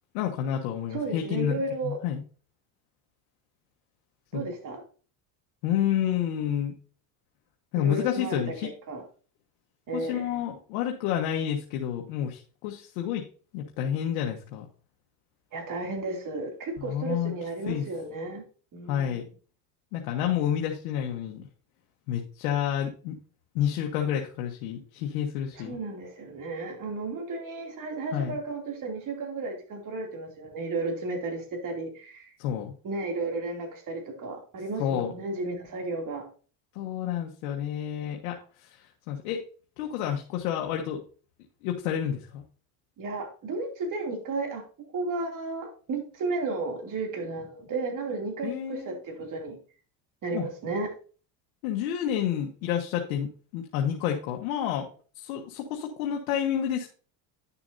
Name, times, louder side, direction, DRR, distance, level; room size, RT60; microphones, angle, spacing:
voice 1, 0.1-2.2 4.3-4.4 5.6-6.7 7.7-8.7 9.9-13.2 13.5-14.6 16.8-17.3 17.6-17.8 18.9-19.2 19.9-21.5 22.1-23.2 23.5-25.8 28.1-28.4 32.4-32.7 34.8-35.1 36.7-39.4 39.8-41.0 41.6-42.4 48.4-49.0 50.3-50.5 51.6-54.9 55.1-56.9, left 10 dB, 90° left, 1 dB, 1.4 m, -29 dB
voice 2, 0.9-2.0 4.3-4.8 7.8-8.5 8.9-9.0 9.9-10.2 15.5-18.4 18.7-19.3 25.6-32.3 32.8-36.3 43.0-49.6 50.2-50.9, right 3 dB, 40° right, 2 dB, 2.8 m, -33 dB
10.5 x 7.0 x 2.7 m, 0.39 s
supercardioid pair, 115°, 46 cm